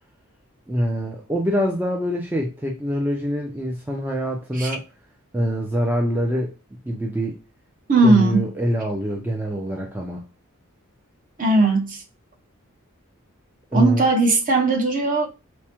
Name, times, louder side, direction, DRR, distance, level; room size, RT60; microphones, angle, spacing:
voice 1, 0.7-4.8 5.3-6.5 6.8-7.4 8.0-10.2 13.7-14.0, equal, 10° right, 0.4 m, -24 dB
voice 2, 7.9-8.5 11.4-12.0 13.7-15.3, right 2 dB, 40° right, 0.7 m, -18 dB
4.6 x 2.1 x 2.9 m
head